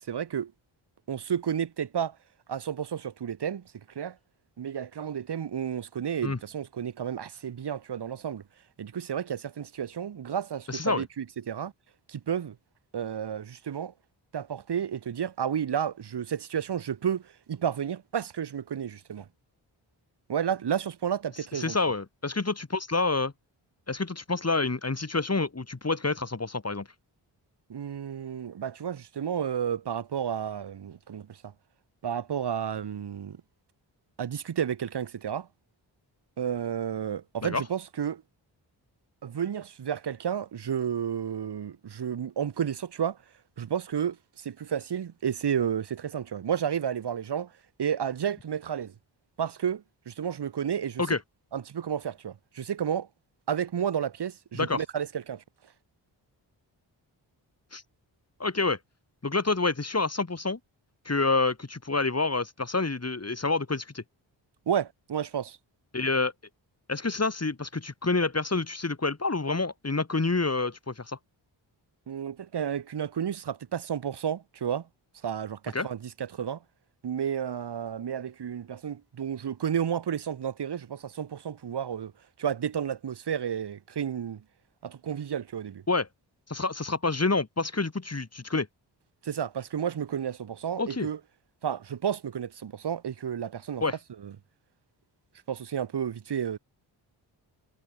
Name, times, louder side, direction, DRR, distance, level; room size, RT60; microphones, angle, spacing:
voice 1, 0.1-0.5 1.1-2.2 2.5-4.2 4.6-8.4 8.8-11.7 12.1-12.6 12.9-13.9 14.3-19.3 20.3-21.8 27.7-31.3 32.0-33.4 34.2-35.5 36.4-38.2 39.2-43.2 43.6-47.5 47.8-48.9 49.4-51.0 51.5-53.1 53.5-55.4 64.7-65.6 72.1-74.9 75.2-76.6 77.0-82.1 82.4-84.4 84.8-85.8 89.2-91.2 91.6-93.8 94.2-94.3 95.5-96.6, right 8 dB, 55° right, 1.3 m, -31 dB
voice 2, 10.7-11.0 21.5-23.3 23.9-26.9 37.4-37.6 51.0-51.2 54.5-54.8 57.7-57.8 58.4-58.8 59.2-60.6 61.0-64.0 65.9-66.3 66.9-71.2 75.7-75.9 85.9-86.1 86.5-88.7 90.8-91.1 93.8-93.9, left 3 dB, 30° left, 4.7 m, -28 dB
supercardioid pair, 40°, 48 cm